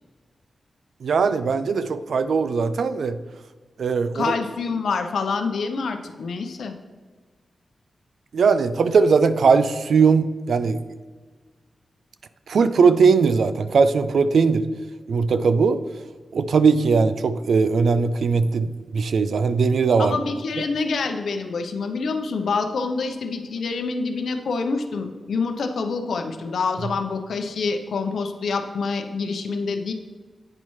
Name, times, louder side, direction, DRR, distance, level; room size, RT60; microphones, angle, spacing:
voice 1, 1.0-3.2 3.8-4.3 8.3-10.8 12.5-14.6 15.1-15.8 16.3-20.2, right 5 dB, 80° right, 12 dB, 0.4 m, -19 dB
voice 2, 4.1-6.7 20.0-29.9, left 4 dB, 85° left, 6 dB, 0.7 m, -26 dB
8.8 x 5.5 x 3.1 m, 1.4 s
wide cardioid pair, 95°, 0 cm